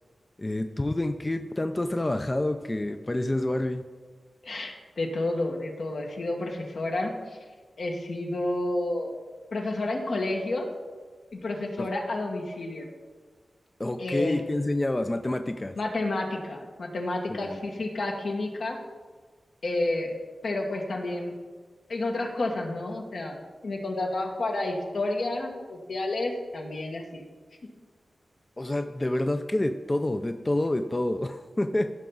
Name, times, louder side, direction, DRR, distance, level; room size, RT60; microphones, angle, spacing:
voice 1, 0.4-3.8 11.8-11.9 13.8-15.8 17.3-17.6 28.6-31.9, left 1 dB, 25° left, 7 dB, 0.5 m, -28 dB
voice 2, 4.4-7.4 7.8-9.1 9.5-10.7 11.3-12.9 14.0-14.4 15.7-18.8 19.6-20.2 20.4-21.3 21.9-23.4 23.6-27.2, left 2 dB, 75° left, 0 dB, 1.6 m, -30 dB
15.5 x 5.8 x 3.9 m, 1.4 s
wide cardioid pair, 70°, 0 cm